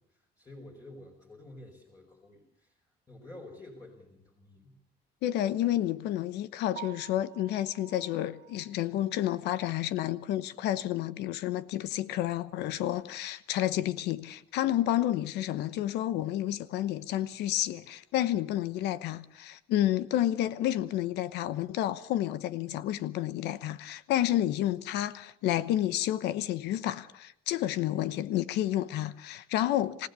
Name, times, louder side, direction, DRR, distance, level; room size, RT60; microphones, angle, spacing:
voice 1, 0.0-4.8, left 1 dB, 20° left, 5.0 m, -50 dB
voice 2, 5.2-30.1, left 13 dB, 85° left, 1.0 m, -30 dB
Piano, 6.7-10.7 11.1-11.2 11.7-11.8 12.1-12.2 15.3-15.4 23.9-24.1, right 16 dB, 70° right, 1.5 m, -51 dB
27.5 x 16.0 x 6.9 m
cardioid pair, 110°, 17 cm